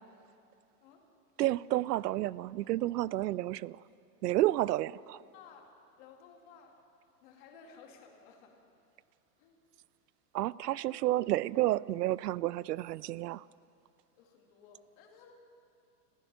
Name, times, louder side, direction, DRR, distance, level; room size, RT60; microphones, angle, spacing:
voice 1, 1.4-3.8 4.2-5.2 10.3-13.4, right 15 dB, 80° right, 22 dB, 0.6 m, -30 dB
voice 2, 5.3-6.8 7.2-8.6 9.4-9.6 10.6-10.9 14.2-15.3, left 6 dB, 30° left, 2 dB, 2.4 m, -56 dB
29.0 x 15.5 x 6.9 m, 2.6 s
supercardioid pair, 180°, 47 cm